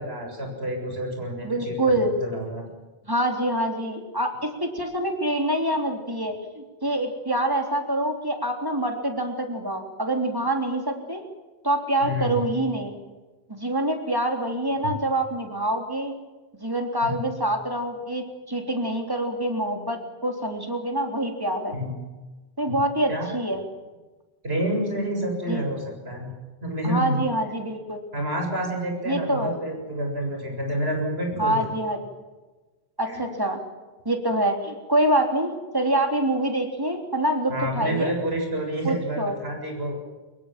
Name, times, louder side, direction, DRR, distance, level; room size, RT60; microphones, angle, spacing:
voice 1, 0.0-2.6 12.0-12.5 17.0-17.2 21.7-21.9 22.7-22.8 23.1-23.4 24.4-26.3 26.6-27.2 28.1-31.6 33.1-33.2 37.5-40.0, right 1 dB, 80° right, 2 dB, 7.5 m, -28 dB
voice 2, 1.4-2.1 3.1-11.2 11.6-12.9 13.5-16.1 16.6-21.8 22.6-23.6 25.5-25.6 26.8-28.0 29.1-29.5 31.4-32.0 33.0-33.6 34.1-38.1 38.8-39.3, right 1 dB, 20° right, 3 dB, 3.6 m, -26 dB
24.0 x 22.0 x 7.6 m, 1.2 s
omnidirectional pair, 1.0 m